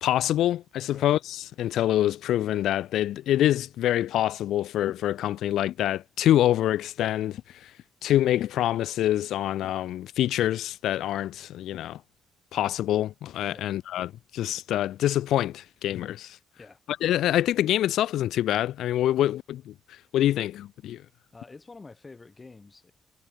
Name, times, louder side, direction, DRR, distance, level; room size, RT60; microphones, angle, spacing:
voice 1, 0.0-7.7 8.0-12.0 12.5-16.4 17.0-19.7 20.1-21.0, left 12 dB, 80° left, 0.6 m, -26 dB
voice 2, 21.3-22.9, left 3 dB, 25° left, 6.6 m, -47 dB
cardioid pair, 90°, 0 cm